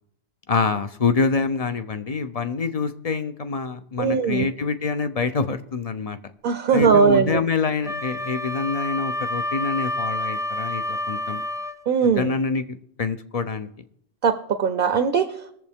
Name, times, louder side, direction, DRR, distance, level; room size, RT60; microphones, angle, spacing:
voice 1, 0.5-6.2 6.7-11.4 12.0-13.7, left 5 dB, 40° left, 10 dB, 0.6 m, -26 dB
voice 2, 4.0-4.5 6.4-7.4 11.9-12.3 14.2-15.3, right 6 dB, 60° right, 10 dB, 0.8 m, -19 dB
Wind instrument woodwind instrument, 7.8-11.8, left 1 dB, 5° right, 0.4 m, -28 dB
21.0 x 7.3 x 3.6 m, 0.73 s
omnidirectional pair, 1.1 m